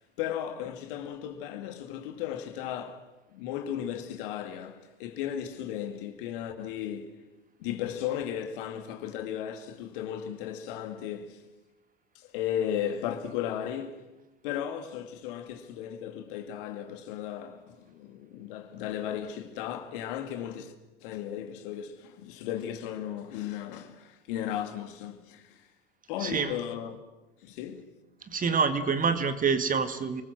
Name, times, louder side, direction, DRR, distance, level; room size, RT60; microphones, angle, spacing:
voice 1, 0.2-3.0 3.3-7.2 7.6-11.4 12.1-14.1 14.4-20.7 21.0-25.7 26.1-27.0 27.4-27.9, left 10 dB, 65° left, 2.4 m, -35 dB
voice 2, 26.2-26.6 28.3-30.2, right 5 dB, 30° right, 2.0 m, -26 dB
28.5 x 20.5 x 6.3 m
figure-of-eight pair, 70°, 29 cm